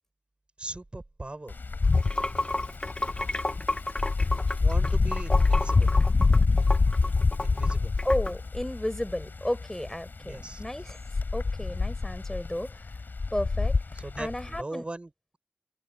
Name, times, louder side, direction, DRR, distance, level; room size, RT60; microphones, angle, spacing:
voice 1, 0.6-1.6 4.6-5.9 7.4-7.9 10.2-10.9 13.9-15.4, right 2 dB, 35° right, 7.3 m, -40 dB
Wind, 1.5-14.6, left 3 dB, 70° left, 6.5 m, -26 dB
Water / Sink (filling or washing), 1.8-8.3, left 2 dB, 30° left, 1.8 m, -32 dB
voice 2, 8.0-11.0 11.3-12.7 13.3-13.8 14.2-14.8, left 1 dB, 15° left, 6.5 m, -32 dB
open air
wide cardioid pair, 75°, 3 cm